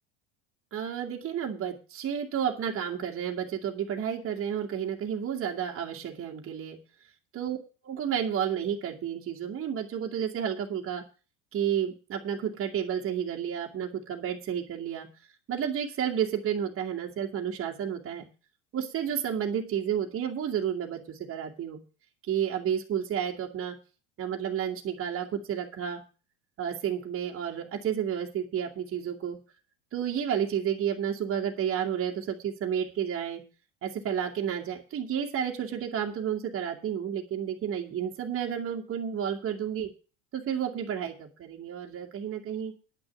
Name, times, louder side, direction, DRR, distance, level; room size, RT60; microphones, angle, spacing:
voice 1, 0.7-6.8 7.3-7.6 7.8-11.0 11.5-15.1 15.5-18.2 18.7-21.8 22.3-23.8 24.2-26.0 26.6-29.4 29.9-33.4 33.8-39.9 40.3-42.7, right 9 dB, 40° right, 0 dB, 2.2 m, -31 dB
10.5 x 6.2 x 8.7 m, 0.35 s
hypercardioid pair, 90°, 35 cm